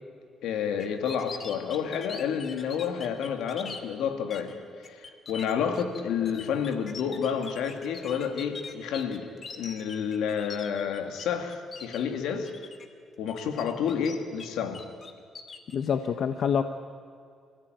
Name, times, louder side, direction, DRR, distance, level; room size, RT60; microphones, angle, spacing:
voice 1, 0.4-4.6 4.9-12.5 13.2-14.8, left 7 dB, 85° left, 6 dB, 2.4 m, -30 dB
sound 1, 0.8-3.8 4.3-4.5 4.8-11.2 11.5-12.0 12.4-12.9 13.3-14.5 14.7-15.8, left 4 dB, 40° left, 2.3 m, -42 dB
voice 2, 15.7-16.6, left 7 dB, 60° left, 8 dB, 1.0 m, -26 dB
27.5 x 16.0 x 9.4 m, 2.3 s
cardioid pair, 90°, 0 cm